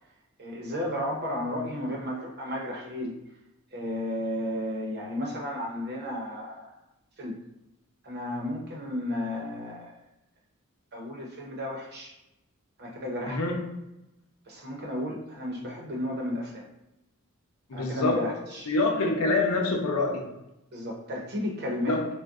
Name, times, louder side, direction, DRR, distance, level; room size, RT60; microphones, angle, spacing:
voice 1, 0.4-3.1 3.7-6.8 7.2-7.4 8.0-9.9 10.9-12.1 12.8-13.4 14.5-16.7 17.7-18.7 20.7-22.0, left 1 dB, 50° right, -1 dB, 0.8 m, -33 dB
voice 2, 13.3-13.7 17.7-20.3 21.9-22.1, left 3 dB, 85° left, 1 dB, 0.7 m, -26 dB
2.6 x 2.2 x 3.5 m, 0.91 s
head